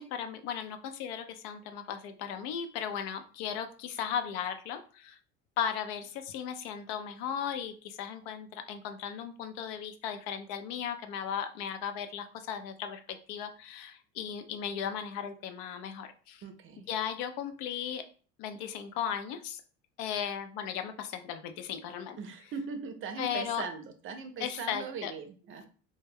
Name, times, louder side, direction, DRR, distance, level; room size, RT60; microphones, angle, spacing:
voice 1, 0.0-5.2 5.6-16.4 16.9-18.0 18.4-19.6 20.0-22.2 23.2-23.6 24.4-25.1, left 8 dB, 75° left, 8 dB, 0.5 m, -36 dB
voice 2, 16.4-16.9 22.2-25.7, right 5 dB, 40° right, 7 dB, 0.5 m, -40 dB
2.2 x 2.2 x 3.4 m, 0.40 s
supercardioid pair, 100°, 33 cm